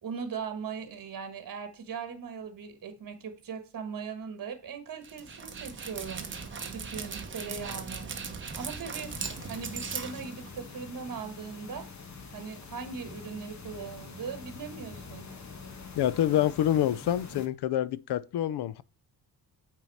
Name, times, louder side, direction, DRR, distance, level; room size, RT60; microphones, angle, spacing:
voice 1, 0.0-6.3 6.6-8.1 8.5-9.1 9.5-11.9 12.3-15.3, right 6 dB, 55° right, 1.4 m, -39 dB
Dog, 5.0-10.8, right 5 dB, 30° right, 1.0 m, -39 dB
sound 1, 9.0-17.5, left 4 dB, 45° left, 1.2 m, -45 dB
voice 2, 16.0-18.8, left 11 dB, 75° left, 0.5 m, -27 dB
9.1 x 3.7 x 4.1 m
wide cardioid pair, 155°, 40 cm